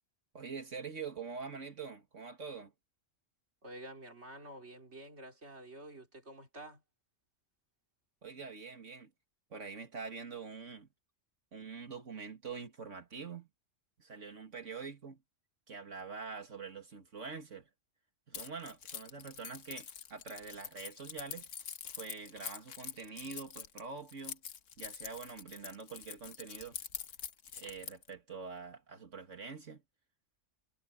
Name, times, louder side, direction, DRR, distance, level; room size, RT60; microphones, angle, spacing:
voice 1, 0.3-2.7 8.2-9.1 9.5-10.9 11.5-13.5 14.0-15.2 15.7-17.7 18.3-21.5 22.0-24.4 24.8-26.8 27.6-29.8, right 5 dB, 80° right, 2.4 m, -45 dB
voice 2, 3.6-6.8, right 1 dB, 65° right, 4.2 m, -49 dB
Keys jangling, 18.3-28.1, left 7 dB, 85° left, 1.4 m, -45 dB
omnidirectional pair, 1.3 m